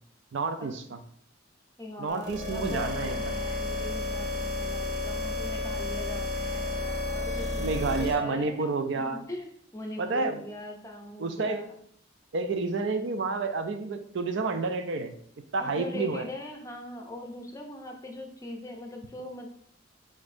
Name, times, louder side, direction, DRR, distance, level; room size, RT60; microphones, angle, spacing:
voice 1, 0.3-1.0 2.0-3.3 7.6-9.2 10.0-10.4 11.2-11.6 12.3-15.1 15.5-16.3, right 3 dB, 65° right, 8 dB, 0.4 m, -30 dB
voice 2, 1.8-8.7 8.9-9.0 9.3-11.7 15.6-19.5, left 1 dB, 15° left, 2 dB, 0.6 m, -41 dB
sound 1, 2.1-8.1, left 2 dB, 35° right, 0.9 m, -32 dB
5.2 x 3.8 x 2.6 m, 0.64 s
head